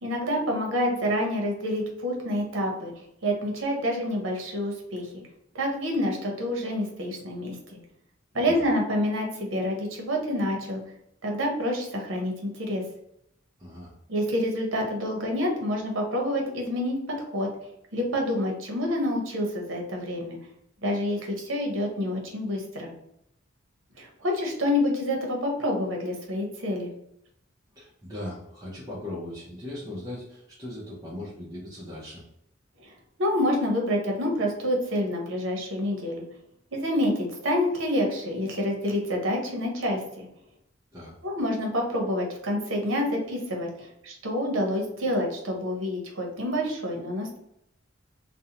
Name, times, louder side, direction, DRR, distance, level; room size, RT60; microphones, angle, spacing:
voice 1, 0.0-2.9 3.2-5.1 5.5-7.8 8.3-10.8 11.2-12.8 14.1-17.5 17.9-20.4 20.8-22.9 24.0-26.9 32.8-36.2 36.7-40.3 41.2-47.4, left 1 dB, 70° right, 1 dB, 0.7 m, -28 dB
voice 2, 8.3-8.6 13.6-13.9 27.8-32.2 40.9-41.1, left 1 dB, 20° right, -6 dB, 0.5 m, -39 dB
2.5 x 2.0 x 2.8 m, 0.76 s
head